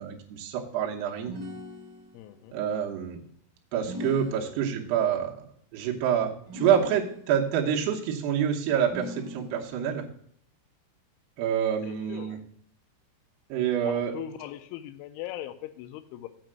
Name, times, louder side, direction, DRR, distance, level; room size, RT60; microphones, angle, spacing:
voice 1, 0.0-1.4 2.5-3.2 3.7-5.5 5.7-10.1 11.4-12.4 13.5-14.1, right 9 dB, 70° right, -2 dB, 2.7 m, -27 dB
sound 1, 1.2-2.4 3.8-5.0 6.5-7.5 8.9-9.9, left 1 dB, 40° right, 2.2 m, -40 dB
voice 2, 2.1-2.5 3.8-3.9 4.3-4.5 11.8-12.4 13.8-16.3, left 12 dB, 80° left, 11 dB, 2.8 m, -40 dB
7.6 x 5.5 x 7.4 m, 0.66 s
omnidirectional pair, 5.6 m